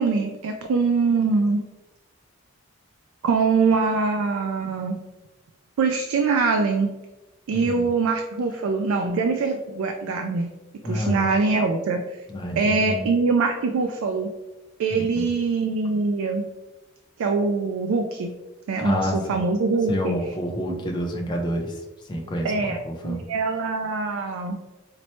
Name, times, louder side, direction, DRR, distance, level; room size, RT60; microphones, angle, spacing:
voice 1, 0.0-1.6 3.2-5.0 5.8-6.9 7.5-10.5 10.8-12.2 12.6-14.3 14.8-16.5 17.2-18.3 18.7-20.2 20.7-20.8 22.4-22.8 23.0-24.6, right 4 dB, 70° right, 4 dB, 0.3 m, -23 dB
voice 2, 7.5-7.9 10.8-11.3 12.3-13.0 14.9-15.3 18.8-19.4 19.9-23.2, equal, 20° left, 1 dB, 0.4 m, -29 dB
4.2 x 2.1 x 3.0 m, 1.1 s
head